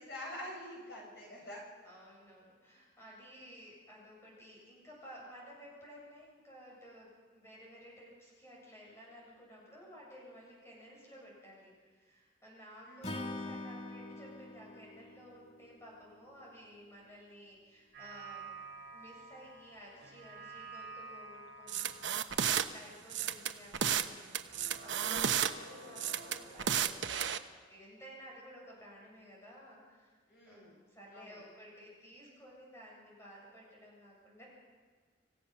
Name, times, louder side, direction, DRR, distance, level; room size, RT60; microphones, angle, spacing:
voice 1, 0.0-1.6 12.8-13.2 30.3-30.8 31.1-31.4, left 1 dB, 60° left, -2 dB, 7.0 m, -46 dB
voice 2, 1.8-27.3 27.7-30.2 30.4-34.5, equal, 15° left, -4 dB, 7.5 m, -54 dB
Acoustic guitar / Strum, 13.0-16.3, left 2 dB, 35° left, 2.0 m, -44 dB
sound 1, 17.9-24.2 24.5-27.0, right 3 dB, 55° right, 6.8 m, -51 dB
sound 2, 21.7-22.6 23.1-24.1 24.3-25.5 26.0-27.4, right 8 dB, 80° right, 1.0 m, -32 dB
27.0 x 16.0 x 6.1 m, 1.5 s
head